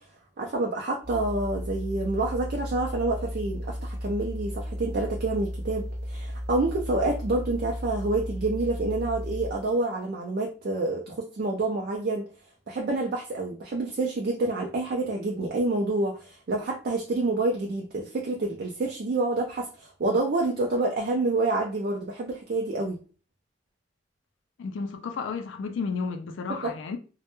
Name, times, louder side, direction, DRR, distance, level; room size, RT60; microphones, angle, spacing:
voice 1, 0.4-12.3 12.7-23.0 26.6-26.7, right 2 dB, 50° right, 0.4 m, -28 dB
sound 1, 1.0-9.7, equal, 35° left, 0.6 m, -35 dB
voice 2, 24.6-27.0, left 5 dB, 80° left, 0.3 m, -32 dB
2.1 x 2.1 x 2.9 m
head